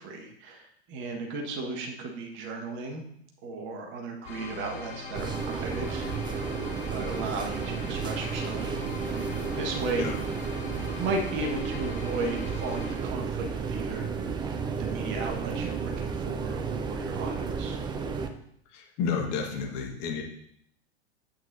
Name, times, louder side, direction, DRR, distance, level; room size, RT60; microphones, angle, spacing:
voice 1, 0.0-3.0 3.4-6.1 6.9-10.3 10.6-14.4 14.8-17.8, right 3 dB, 35° right, 2 dB, 1.6 m, -35 dB
sound 1, 4.2-12.9, left 3 dB, 65° left, 2.9 m, -41 dB
sound 2, 5.1-18.3, right 5 dB, 15° right, 0.5 m, -32 dB
voice 2, 18.7-20.2, left 6 dB, 40° left, 1 dB, 1.7 m, -31 dB
8.6 x 8.4 x 2.7 m, 0.70 s
figure-of-eight pair, 95°, 33 cm